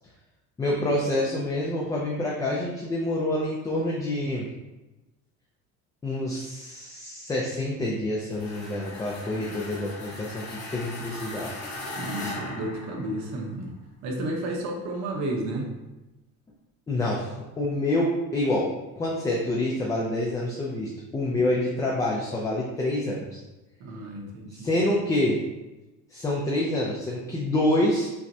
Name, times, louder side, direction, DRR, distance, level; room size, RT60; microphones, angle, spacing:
voice 1, 0.6-4.5 6.0-11.5 16.9-17.3 17.6-18.7 19.0-23.4 24.5-25.4 26.1-28.1, left 1 dB, 10° left, -3 dB, 0.3 m, -27 dB
sound 1, 8.3-13.5, left 2 dB, 55° left, 1.4 m, -38 dB
voice 2, 12.0-13.7 14.0-15.7 23.8-24.7, right 1 dB, 60° right, 1 dB, 0.9 m, -32 dB
5.7 x 2.1 x 2.7 m, 1.0 s
cardioid pair, 145°, 31 cm